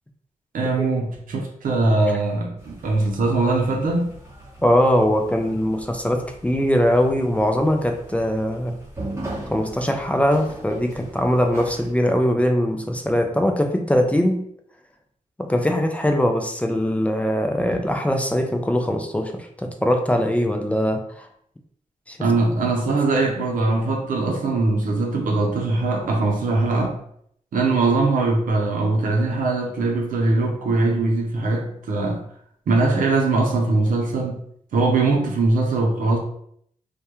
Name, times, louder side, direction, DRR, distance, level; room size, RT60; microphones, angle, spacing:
voice 1, 0.5-4.1 22.2-27.0 27.5-32.2 32.7-34.4 34.7-36.2, right 3 dB, 80° right, 0 dB, 0.6 m, -21 dB
sound 1, 2.6-11.9, right 1 dB, 20° right, 0.9 m, -39 dB
voice 2, 4.6-8.7 9.5-14.5 15.4-21.3 22.1-22.2, equal, 10° left, 3 dB, 0.4 m, -21 dB
2.2 x 2.2 x 2.9 m, 0.67 s
cardioid pair, 60°, 14 cm